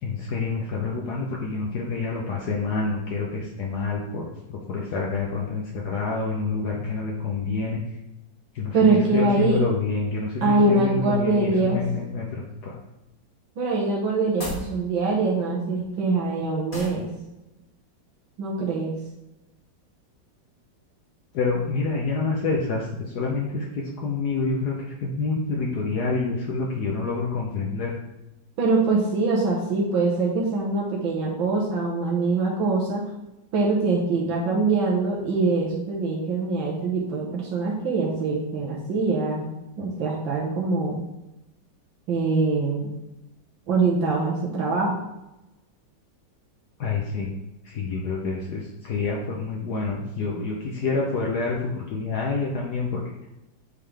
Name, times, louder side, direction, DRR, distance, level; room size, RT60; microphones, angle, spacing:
voice 1, 0.0-7.8 8.5-12.8 21.3-22.9 23.1-27.9 46.8-47.3 47.6-53.0, left 4 dB, 65° left, -2 dB, 1.3 m, -27 dB
voice 2, 8.7-9.6 10.4-11.8 13.6-17.1 18.4-18.9 28.6-33.0 33.5-39.5 39.8-41.0 42.1-42.9 43.7-45.0, right 3 dB, 85° right, -4 dB, 1.9 m, -23 dB
sound 1, 14.4-14.7 16.7-17.0, equal, 25° left, 1.8 m, -33 dB
8.5 x 3.7 x 3.4 m, 0.93 s
omnidirectional pair, 2.1 m